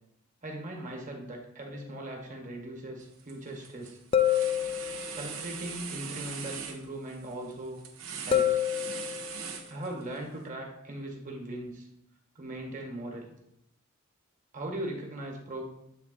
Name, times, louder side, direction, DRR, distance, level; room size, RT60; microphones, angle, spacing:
voice 1, 0.4-4.0 5.1-7.8 8.2-8.7 9.7-11.9 12.3-13.3 14.5-15.6, right 1 dB, 40° right, 0 dB, 1.4 m, -39 dB
sound 1, 1.7-1.8 4.1-5.3 8.3-9.4, left 10 dB, 25° left, 0.3 m, -27 dB
sound 2, 3.0-3.3 3.6-10.2, right 6 dB, 75° right, 0.8 m, -41 dB
8.0 x 3.6 x 3.9 m, 0.80 s
head